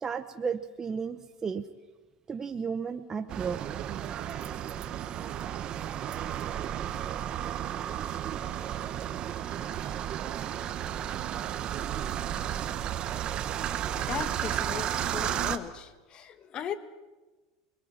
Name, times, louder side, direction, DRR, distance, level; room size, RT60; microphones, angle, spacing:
voice 1, 0.0-1.6 2.3-3.8, right 6 dB, 20° right, 7 dB, 0.9 m, -33 dB
sound 1, 3.3-15.6, right 10 dB, 40° right, 1.3 m, -33 dB
voice 2, 13.7-16.8, left 8 dB, 35° left, 12 dB, 1.6 m, -38 dB
27.0 x 21.5 x 7.3 m, 1.2 s
supercardioid pair, 125°, 2 cm